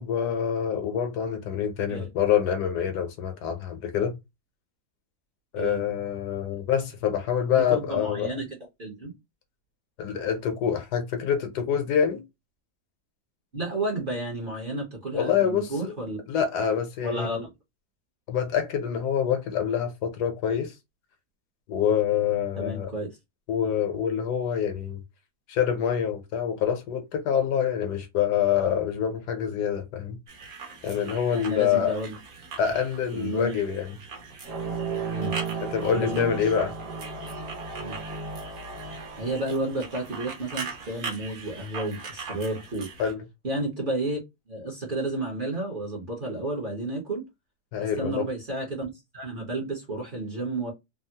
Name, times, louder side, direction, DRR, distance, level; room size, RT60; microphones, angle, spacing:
voice 1, 0.0-4.2 5.5-8.4 10.0-12.2 15.1-15.9 16.3-17.3 18.3-20.7 21.7-22.9 23.5-25.0 25.5-30.2 30.8-31.9 32.6-33.9 35.7-36.7 43.0-43.2 47.7-48.2, left 8 dB, 80° left, 1.3 m, -26 dB
voice 2, 7.5-9.1 13.5-16.2 17.0-17.5 22.6-23.1 31.3-32.2 33.1-33.5 35.1-35.4 35.9-36.5 37.8-38.0 39.2-42.9 43.4-44.2 44.5-47.2 47.8-50.7, right 2 dB, 40° right, 0.9 m, -31 dB
sound 1, 30.3-43.1, right 5 dB, 65° right, 1.4 m, -41 dB
sound 2, 34.4-40.6, right 5 dB, 80° right, 1.4 m, -35 dB
3.4 x 2.0 x 2.7 m
omnidirectional pair, 1.7 m